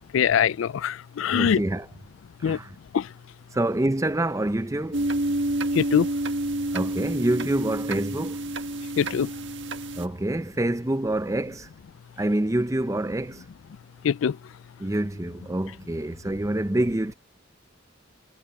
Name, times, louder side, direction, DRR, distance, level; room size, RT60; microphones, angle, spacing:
voice 1, 0.1-1.6 2.4-2.6 2.9-3.0 5.8-6.1 9.0-9.3 14.0-14.3, left 8 dB, 80° left, 0.4 m, -22 dB
voice 2, 1.3-1.9 2.4-2.7 3.5-5.0 6.7-8.4 9.9-11.7 12.2-13.4 14.8-17.1, right 1 dB, 15° right, 0.5 m, -26 dB
sound 1, 4.9-10.1, right 1 dB, 65° right, 1.5 m, -29 dB
head